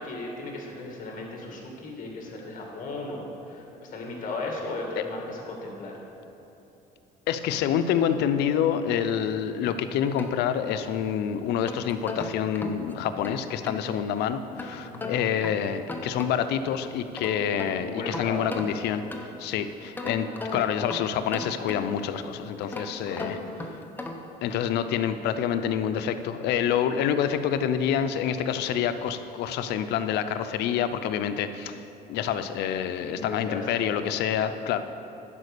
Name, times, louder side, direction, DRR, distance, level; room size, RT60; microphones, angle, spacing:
voice 1, 0.0-6.0 14.7-15.4 17.7-18.5 22.6-23.6 33.0-33.7, left 2 dB, 50° left, -1 dB, 2.1 m, -37 dB
voice 2, 7.3-19.0 19.4-23.4 24.4-31.8 32.1-34.8, left 8 dB, 80° left, 10 dB, 0.6 m, -27 dB
sound 1, 9.7-11.0 11.5-13.9 14.6-16.6 17.0-19.5 20.0-22.1 22.6-24.4, left 2 dB, 10° left, 0.8 m, -38 dB
11.0 x 5.2 x 6.6 m, 3.0 s
cardioid pair, 110°, 17 cm